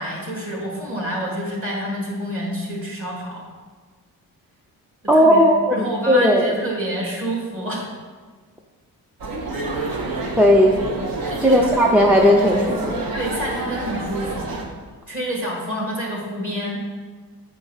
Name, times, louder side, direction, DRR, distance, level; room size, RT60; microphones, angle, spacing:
voice 1, 0.0-3.4 5.1-5.4 5.7-7.9 11.3-11.8 13.1-14.6 15.1-16.8, equal, 35° right, -2 dB, 2.0 m, -28 dB
voice 2, 5.1-6.5 10.4-10.9 11.4-13.0, equal, 5° right, 1 dB, 0.4 m, -16 dB
sound 1, 9.2-14.6, right 2 dB, 70° right, 1.2 m, -28 dB
8.2 x 4.5 x 5.6 m, 1.4 s
wide cardioid pair, 165°, 37 cm